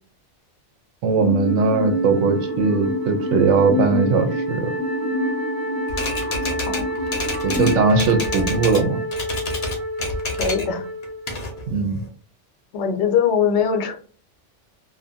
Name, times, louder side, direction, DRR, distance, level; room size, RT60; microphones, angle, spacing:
voice 1, 1.0-4.7 7.4-9.0 11.7-12.0, right 4 dB, 85° right, 7 dB, 0.9 m, -19 dB
sound 1, 1.2-7.8, left 1 dB, 50° right, 0.8 m, -28 dB
Wind instrument woodwind instrument, 1.4-11.7, right 1 dB, 30° right, 0.4 m, -30 dB
Typewriter, 5.9-8.9 9.1-10.7 11.0-12.1, left 2 dB, 45° left, 0.6 m, -29 dB
voice 2, 10.4-10.8 12.7-14.0, left 7 dB, 70° left, 5 dB, 0.8 m, -21 dB
2.5 x 2.2 x 2.5 m, 0.40 s
omnidirectional pair, 1.2 m